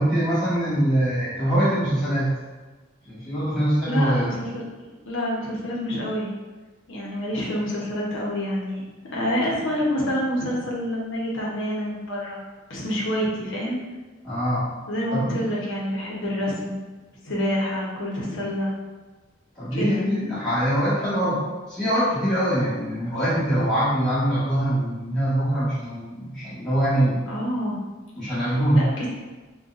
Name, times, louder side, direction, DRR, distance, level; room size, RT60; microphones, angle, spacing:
voice 1, 0.0-2.3 3.0-4.4 14.2-14.7 15.1-15.3 19.5-21.4 21.7-27.3 28.1-28.8, right 1 dB, 5° left, -14 dB, 1.5 m, -23 dB
voice 2, 3.9-4.6 5.1-6.3 6.9-8.8 9.1-12.4 12.7-13.8 14.9-16.8 17.2-18.7 19.7-20.0 27.3-27.8 28.4-29.1, equal, 75° left, -4 dB, 0.8 m, -27 dB
3.9 x 2.3 x 2.4 m, 1.3 s
head